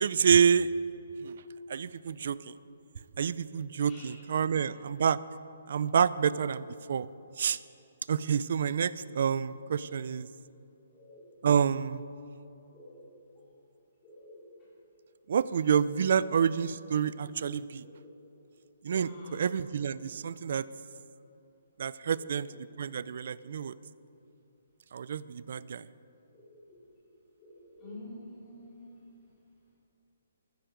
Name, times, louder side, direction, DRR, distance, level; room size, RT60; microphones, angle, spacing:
voice 1, 0.0-0.7 1.2-1.3 1.7-2.5 3.2-5.2 5.7-7.1 7.4-7.6 8.1-10.3 11.4-12.0 15.3-17.8 18.8-20.6 21.8-22.5 22.8-23.7 24.9-25.8, right 7 dB, 50° right, 17 dB, 0.4 m, -28 dB
voice 2, 3.9-4.2 10.9-11.2 12.7-13.0 14.0-14.4 17.8-18.1 19.0-19.5 22.1-22.2 23.2-23.3 26.3-26.8 27.4-29.1, left 1 dB, 15° left, -7 dB, 3.8 m, -49 dB
15.0 x 13.0 x 5.1 m, 2.8 s
hypercardioid pair, 175°, 0 cm